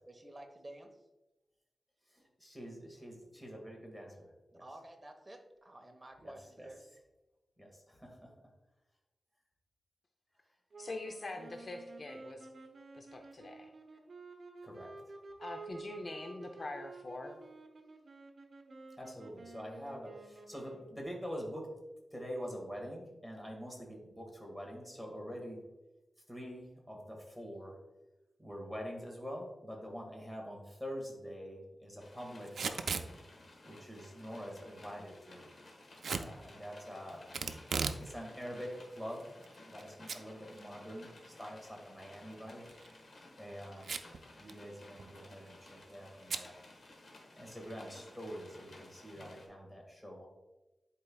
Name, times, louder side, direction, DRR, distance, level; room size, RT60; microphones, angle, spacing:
voice 1, 0.1-1.0 4.5-6.8, right 1 dB, 20° right, 3 dB, 1.0 m, -51 dB
voice 2, 2.1-4.3 4.5-4.6 6.2-6.7 7.6-8.3 14.6-14.9 19.0-21.7 22.1-25.6 26.3-27.8 28.4-32.9 33.6-35.5 36.2-37.3 38.0-39.3 39.7-41.1 41.4-42.6 43.4-44.0 44.4-46.6 47.4-50.3, equal, 5° left, 0 dB, 1.7 m, -45 dB
sound 1, 10.7-21.1, right 3 dB, 55° right, 0.9 m, -51 dB
voice 3, 10.8-12.5 12.9-13.7 15.4-17.4, left 2 dB, 45° left, 4 dB, 0.5 m, -44 dB
sound 2, 32.0-49.5, left 2 dB, 65° left, 1.4 m, -56 dB
Packing tape duct tape / Tearing, 32.5-33.1 36.0-36.3 37.3-38.0 38.4-38.5 39.2-39.8 40.1-40.2 40.6-40.7 42.6-42.9 43.8-44.2 44.5-44.6 44.8-45.2 46.3-46.5, right 5 dB, 90° right, 0.4 m, -36 dB
10.5 x 4.5 x 2.3 m, 1.0 s
wide cardioid pair, 115°, 0 cm